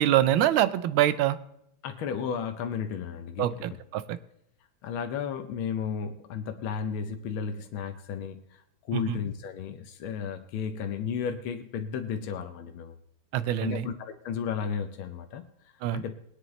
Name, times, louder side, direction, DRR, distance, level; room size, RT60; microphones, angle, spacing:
voice 1, 0.0-1.4 3.4-4.2 9.1-9.2 13.3-13.9 15.8-16.0, right 12 dB, 80° right, 14 dB, 1.4 m, -25 dB
voice 2, 1.8-3.6 4.8-12.9 13.6-16.2, left 7 dB, 80° left, 6 dB, 1.6 m, -34 dB
20.0 x 9.8 x 3.2 m, 0.75 s
omnidirectional pair, 2.2 m